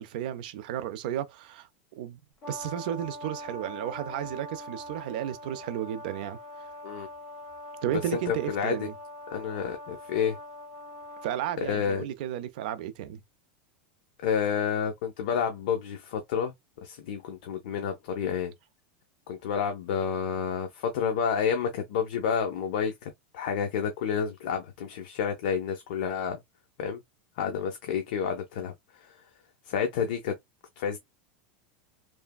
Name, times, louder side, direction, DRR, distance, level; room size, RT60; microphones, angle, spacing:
voice 1, 0.0-1.7 2.0-2.2 2.5-6.4 7.8-8.9 11.2-13.2, right 11 dB, 60° right, 0.4 m, -33 dB
Brass instrument, 2.4-11.4, equal, 15° left, 1.2 m, -43 dB
voice 2, 8.1-8.9 9.3-10.4 11.7-12.0 14.2-16.5 16.8-18.5 19.3-26.4 26.8-27.0 27.4-28.7 29.7-30.3 30.8-31.0, left 7 dB, 60° left, 0.6 m, -29 dB
3.2 x 2.1 x 2.2 m
supercardioid pair, 175°, 5 cm